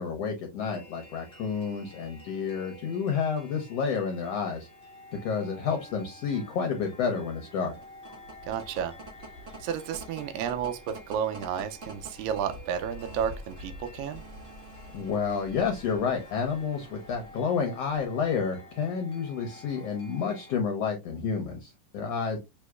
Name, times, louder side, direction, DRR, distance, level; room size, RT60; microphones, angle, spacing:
voice 1, 0.0-4.7 5.2-7.8 14.9-22.4, left 6 dB, 75° left, 1.5 m, -30 dB
sound 1, 0.6-20.6, left 1 dB, 5° left, 0.7 m, -51 dB
sound 2, 7.8-18.4, right 1 dB, 70° right, 0.7 m, -46 dB
voice 2, 8.5-8.9 9.6-14.2, right 8 dB, 90° right, 2.2 m, -32 dB
6.1 x 3.0 x 2.3 m
omnidirectional pair, 3.8 m